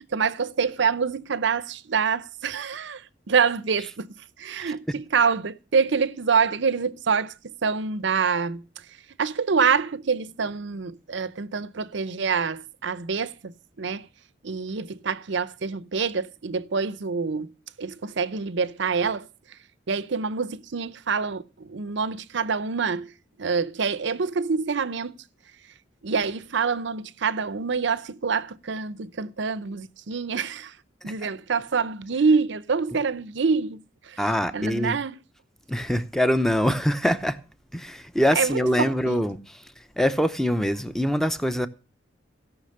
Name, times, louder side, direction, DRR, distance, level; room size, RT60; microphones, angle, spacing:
voice 1, 0.1-3.0 3.3-4.1 4.4-8.6 9.2-14.1 14.4-17.5 17.8-19.3 19.9-23.1 23.4-25.1 26.0-30.7 31.0-34.2 34.5-35.1 38.4-39.2, right 5 dB, 70° right, 0.7 m, -26 dB
voice 2, 34.2-35.0 35.7-37.4 37.7-41.7, equal, ahead, 0.8 m, -24 dB
16.5 x 6.0 x 6.6 m
head